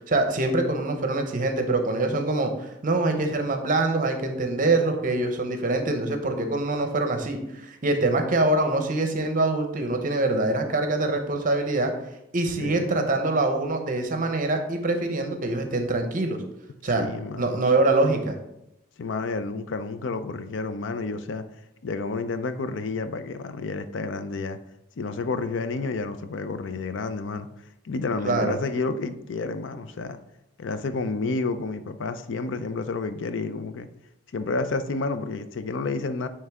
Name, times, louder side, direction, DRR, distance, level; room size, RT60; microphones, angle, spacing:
voice 1, 0.0-11.9 12.3-16.4 16.8-17.1 17.4-18.4 28.2-28.6, right 2 dB, 45° right, 5 dB, 0.8 m, -24 dB
voice 2, 12.6-12.9 16.9-17.9 19.0-21.4 21.8-24.6 25.0-27.5 27.8-30.2 30.6-33.9 34.3-36.3, left 3 dB, 70° left, 10 dB, 0.5 m, -30 dB
9.1 x 3.3 x 3.5 m, 0.85 s
head